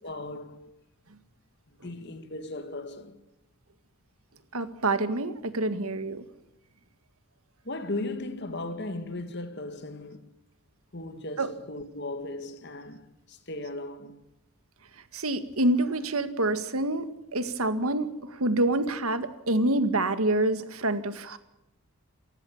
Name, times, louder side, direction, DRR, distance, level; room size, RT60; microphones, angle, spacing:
voice 1, 0.0-0.7 1.7-3.2 7.6-10.3 10.9-14.2, left 2 dB, 50° left, 2.1 m, -37 dB
voice 2, 4.5-6.2 11.4-11.5 15.1-21.4, right 2 dB, 75° right, 1.9 m, -27 dB
29.0 x 15.5 x 7.3 m
head